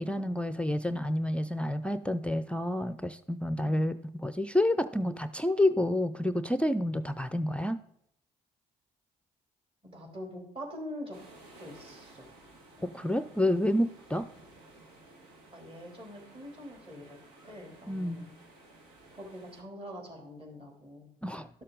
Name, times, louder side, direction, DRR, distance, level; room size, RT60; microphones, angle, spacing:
voice 1, 0.0-3.9 4.2-7.8 12.8-14.3 17.9-18.3 21.2-21.5, left 1 dB, 5° left, 12 dB, 0.5 m, -29 dB
voice 2, 9.9-11.2 11.6-12.3 12.8-13.2 15.5-18.3 19.1-21.1 21.3-21.4, equal, 30° right, 1 dB, 3.1 m, -45 dB
sound 1, 11.1-19.6, right 2 dB, 75° right, 1.8 m, -55 dB
12.0 x 6.5 x 3.8 m, 0.77 s
hypercardioid pair, 50°, 19 cm